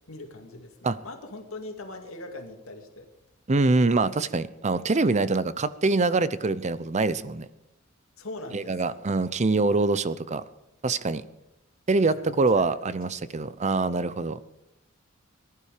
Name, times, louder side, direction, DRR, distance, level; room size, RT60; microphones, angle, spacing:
voice 1, 0.1-3.1 8.2-9.1 9.3-9.5 9.8-10.0 12.1-12.7, left 2 dB, 80° left, 4 dB, 2.2 m, -42 dB
voice 2, 3.5-7.5 8.5-10.4 10.8-11.2 11.9-14.4, right 3 dB, 35° right, 15 dB, 0.6 m, -24 dB
19.0 x 11.5 x 5.1 m, 0.87 s
head